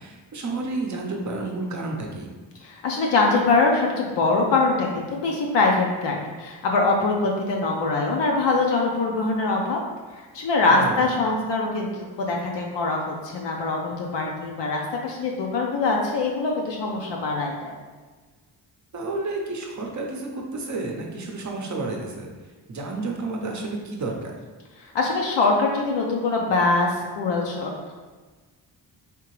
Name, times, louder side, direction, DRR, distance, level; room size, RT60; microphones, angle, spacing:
voice 1, 0.0-2.3 10.7-11.0 18.9-22.3 22.7-24.3, right 2 dB, 40° right, 1 dB, 0.7 m, -31 dB
voice 2, 2.6-9.8 10.2-17.7 24.8-27.9, left 3 dB, 75° left, 0 dB, 0.6 m, -23 dB
3.6 x 2.8 x 3.0 m, 1.3 s
cardioid pair, 100°, 43 cm